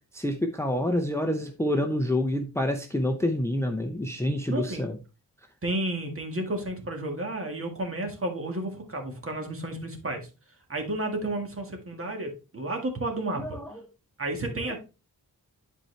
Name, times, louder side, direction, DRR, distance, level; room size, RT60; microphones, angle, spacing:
voice 1, 0.1-5.0 13.4-13.6, left 1 dB, 5° left, 5 dB, 0.6 m, -27 dB
voice 2, 4.5-4.8 5.6-10.3 10.7-13.6 14.2-14.8, right 1 dB, 35° right, 3 dB, 1.8 m, -32 dB
10.5 x 4.5 x 3.2 m, 0.30 s
wide cardioid pair, 140°, 38 cm